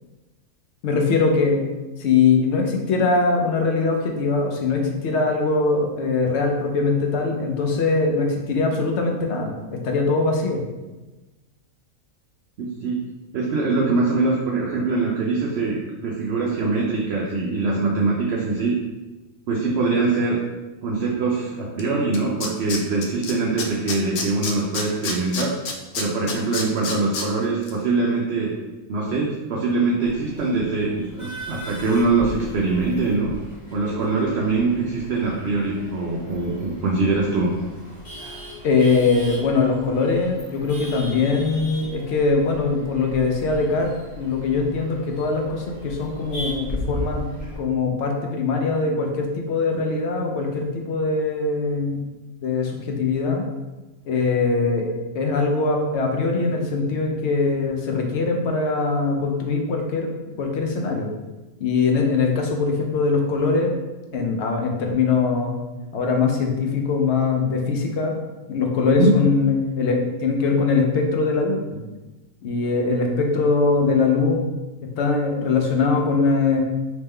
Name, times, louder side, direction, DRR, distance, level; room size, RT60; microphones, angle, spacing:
voice 1, 0.8-1.6 2.0-10.6 38.6-43.9 44.2-47.2 47.6-52.0 52.4-53.4 54.1-60.1 60.4-61.1 61.6-63.7 64.1-65.6 65.9-68.1 68.5-71.8 72.4-74.5 75.0-76.6, left 4 dB, 60° left, 2 dB, 0.8 m, -22 dB
voice 2, 12.6-13.0 13.3-18.7 19.5-20.4 20.8-25.5 26.0-28.5 28.9-33.3 33.7-37.5 69.0-69.1, right 3 dB, 65° right, -2 dB, 0.6 m, -23 dB
Tools, 21.8-21.9 22.1-23.3 23.6-27.2 27.6-27.7, left 4 dB, 90° left, 1.1 m, -28 dB
Male speech man speaking / Laughter / Chatter, 30.0-47.6, equal, 30° left, 1.5 m, -37 dB
3.5 x 3.0 x 3.2 m, 1.1 s
omnidirectional pair, 1.5 m